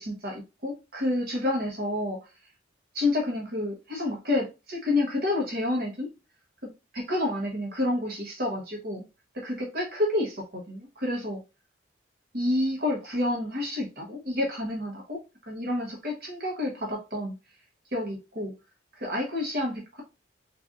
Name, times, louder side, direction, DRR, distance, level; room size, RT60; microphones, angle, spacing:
voice 1, 0.0-2.2 2.9-6.1 6.9-9.0 9.3-11.4 12.3-15.2 15.5-17.3 17.9-18.5 19.0-20.0, left 1 dB, 50° right, 1.2 m, -29 dB
3.9 x 3.3 x 2.4 m
head